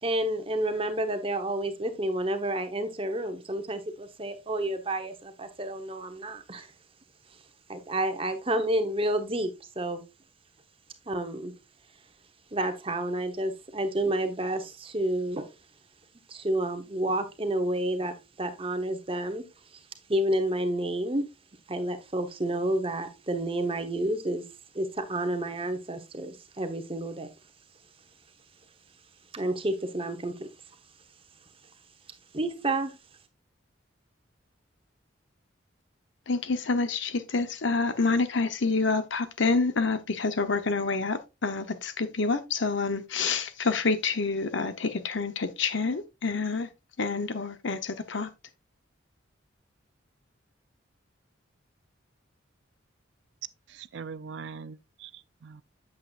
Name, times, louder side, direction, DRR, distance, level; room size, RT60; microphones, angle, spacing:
voice 1, 0.0-6.7 7.7-10.0 11.1-11.5 12.5-15.5 16.3-19.5 19.7-19.8 20.1-21.3 21.7-24.4 24.7-27.3 29.3-30.5 32.3-32.9, right 1 dB, 25° right, 1.0 m, -30 dB
voice 2, 36.3-46.7 47.0-48.3, left 4 dB, 65° left, 0.8 m, -28 dB
voice 3, 53.7-55.6, right 5 dB, 60° right, 0.4 m, -42 dB
8.5 x 7.5 x 2.4 m
head